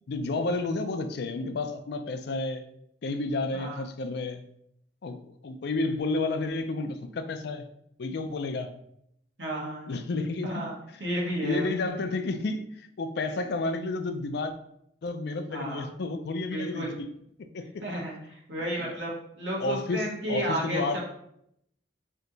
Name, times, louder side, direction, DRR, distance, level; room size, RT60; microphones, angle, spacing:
voice 1, 0.1-2.6 3.0-4.4 5.0-7.6 8.0-8.7 9.9-10.5 11.4-12.7 13.0-14.5 15.0-16.9 17.5-17.8 18.7-19.0 19.6-21.0, left 3 dB, 65° left, 8 dB, 0.4 m, -31 dB
voice 2, 3.5-3.8 9.4-10.0 10.4-10.7 11.0-11.7 15.5-15.9 16.5-17.0 17.8-21.0, right 1 dB, 75° right, -3 dB, 1.2 m, -33 dB
3.4 x 2.8 x 3.8 m, 0.73 s
head